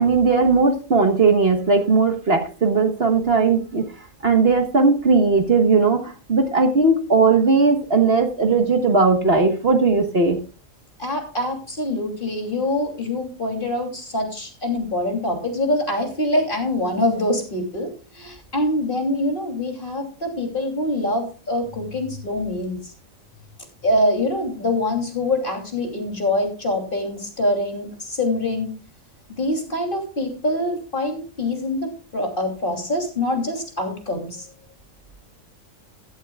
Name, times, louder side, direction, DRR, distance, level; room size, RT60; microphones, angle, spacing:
voice 1, 0.0-3.8 4.2-10.4, right 4 dB, 50° right, 6 dB, 1.5 m, -18 dB
voice 2, 11.0-17.9 18.1-22.9 23.8-28.7 29.3-34.5, left 1 dB, 40° left, 2 dB, 3.2 m, -24 dB
15.5 x 12.0 x 2.3 m, 0.35 s
omnidirectional pair, 1.4 m